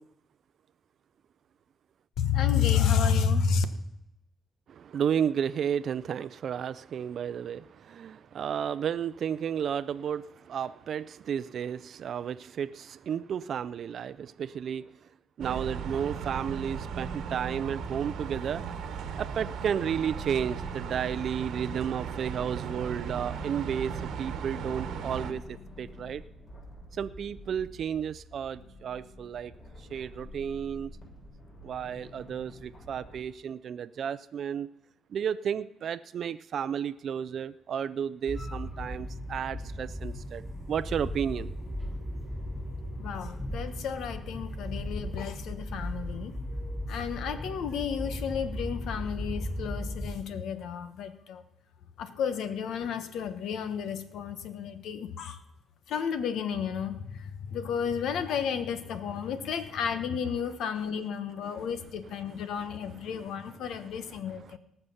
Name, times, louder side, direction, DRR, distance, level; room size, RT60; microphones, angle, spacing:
voice 1, 2.2-3.6 43.0-46.3 46.9-51.4 52.0-55.4 55.9-57.2 57.5-64.6, left 7 dB, 80° left, 10 dB, 1.1 m, -31 dB
voice 2, 4.7-14.9 15.4-18.6 19.2-26.2 26.9-29.5 29.9-30.9 31.6-34.7 35.1-41.5 61.5-61.7 63.2-63.3 63.7-64.6, right 8 dB, 60° right, 13 dB, 0.4 m, -33 dB
sound 1, 15.4-25.3, right 6 dB, 80° right, 1.2 m, -36 dB
sound 2, 19.9-33.2, left 1 dB, 45° left, 6.1 m, -49 dB
sound 3, 38.3-50.1, left 1 dB, 5° left, 4.5 m, -37 dB
19.0 x 6.7 x 5.6 m, 0.84 s
cardioid pair, 90°, 0 cm